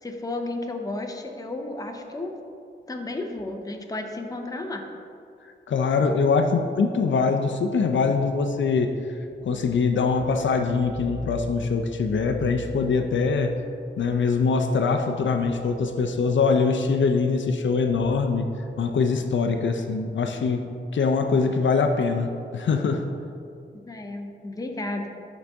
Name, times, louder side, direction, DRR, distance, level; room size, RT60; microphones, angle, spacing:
voice 1, 0.0-2.3 2.9-4.9 23.8-25.1, left 2 dB, 20° left, 3 dB, 0.6 m, -33 dB
voice 2, 5.7-8.9 9.4-13.5 14.0-18.5 18.8-20.6 20.9-23.0, left 4 dB, 75° left, 5 dB, 0.5 m, -23 dB
11.0 x 4.0 x 3.5 m, 2.5 s
wide cardioid pair, 130°, 19 cm